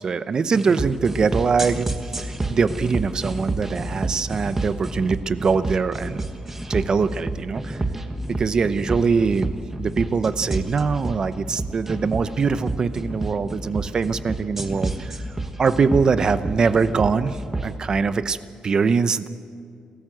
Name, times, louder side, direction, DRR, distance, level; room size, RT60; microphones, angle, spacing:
voice 1, 0.0-6.3 6.7-7.8 8.3-15.2 15.6-18.4 18.6-19.3, right 5 dB, 35° right, 13 dB, 0.7 m, -23 dB
sound 1, 0.5-17.7, right 2 dB, 15° right, 1.3 m, -29 dB
29.5 x 14.0 x 7.7 m, 2.3 s
wide cardioid pair, 155°, 2 cm